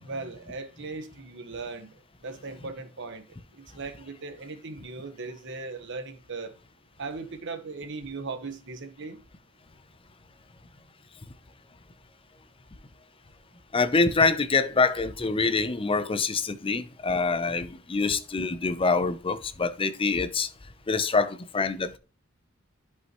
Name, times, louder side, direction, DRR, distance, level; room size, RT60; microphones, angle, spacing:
voice 1, 0.0-1.9 2.2-6.5 7.0-9.2, right 3 dB, 60° right, 1.3 m, -38 dB
voice 2, 13.7-20.5 20.9-22.0, left 4 dB, 25° left, 0.6 m, -25 dB
11.0 x 5.5 x 3.1 m
head